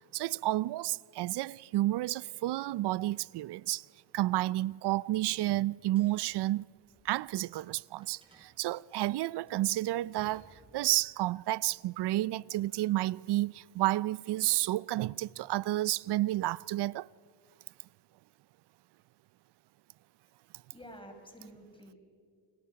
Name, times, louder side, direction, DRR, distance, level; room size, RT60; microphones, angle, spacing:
voice 1, 0.1-3.8 4.1-6.6 7.0-17.1, right 16 dB, 65° right, 0.6 m, -31 dB
sound 1, 6.0-7.7 8.0-11.1, right 2 dB, 10° right, 7.7 m, -61 dB
voice 2, 20.7-22.0, equal, 10° left, 5.8 m, -50 dB
29.5 x 28.0 x 5.8 m
cardioid pair, 90°, 44 cm